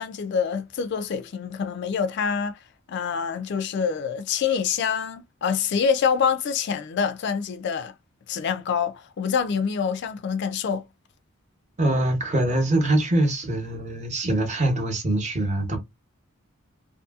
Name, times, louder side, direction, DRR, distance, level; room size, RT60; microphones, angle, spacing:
voice 1, 0.0-2.6 2.9-7.9 8.3-10.9, left 6 dB, 55° left, 0.3 m, -26 dB
voice 2, 11.8-15.8, right 1 dB, 35° right, 0.8 m, -23 dB
2.7 x 2.6 x 2.3 m
head